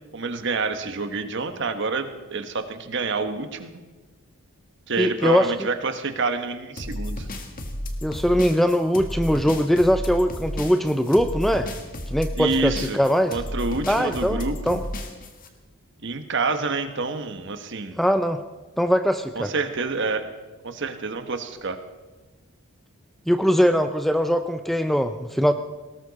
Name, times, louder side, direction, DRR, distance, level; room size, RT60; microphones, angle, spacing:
voice 1, 0.1-3.7 4.9-7.3 12.4-13.0 13.3-14.8 16.0-18.0 19.3-20.3 20.6-21.8, right 3 dB, 55° right, 8 dB, 1.2 m, -28 dB
voice 2, 5.0-5.7 8.0-11.7 12.1-13.4 13.9-14.4 14.7-14.8 18.0-18.4 18.8-19.5 23.3-25.5, equal, ahead, 9 dB, 0.4 m, -21 dB
sound 1, 6.8-15.5, left 1 dB, 40° left, 1.6 m, -32 dB
20.0 x 18.0 x 4.1 m, 1.2 s
head